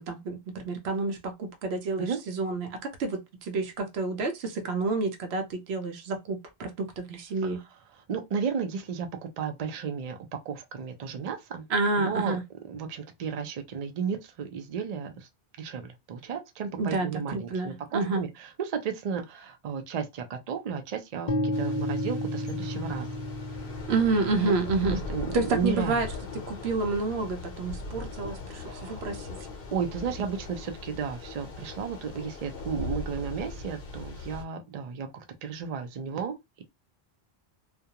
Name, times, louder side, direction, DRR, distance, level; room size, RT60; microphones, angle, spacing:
voice 1, 0.0-7.6 11.7-12.4 16.8-18.3 23.9-25.0 25.3-26.1 26.3-29.4, right 3 dB, 80° right, 0.9 m, -29 dB
voice 2, 8.1-11.6 12.0-12.4 12.6-15.3 15.6-23.1 24.8-26.0 28.6-29.1 29.7-36.6, right 6 dB, 50° right, 0.5 m, -33 dB
sound 1, 21.3-29.2, left 1 dB, 40° left, 0.5 m, -35 dB
Thunder / Rain, 21.5-34.4, left 3 dB, 70° left, 0.9 m, -40 dB
2.4 x 2.2 x 2.8 m
omnidirectional pair, 1.1 m